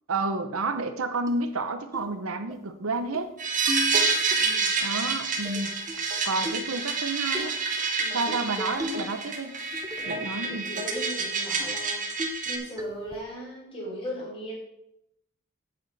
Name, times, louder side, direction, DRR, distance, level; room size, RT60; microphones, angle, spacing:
voice 1, 0.1-3.3 4.8-5.7 6.2-7.5 8.1-9.6 10.1-10.7, right 3 dB, 85° right, 9 dB, 0.9 m, -30 dB
sound 1, 1.3-1.4 1.9-2.1 2.5-2.6 2.9-3.3 3.7-4.4 5.4-6.1 6.4-6.8 7.3-7.5 8.6-9.2 9.5-10.2 10.5-10.6 10.9-11.2 11.6-11.7 12.2-12.5 12.8-13.2, left 1 dB, 15° right, 0.6 m, -36 dB
sound 2, 3.4-12.6, right 4 dB, 40° right, 1.2 m, -28 dB
voice 2, 4.4-4.8 6.4-6.5 8.0-8.3 10.0-12.0 12.4-14.5, equal, 25° left, -4 dB, 3.4 m, -38 dB
8.7 x 8.0 x 4.1 m, 0.82 s
head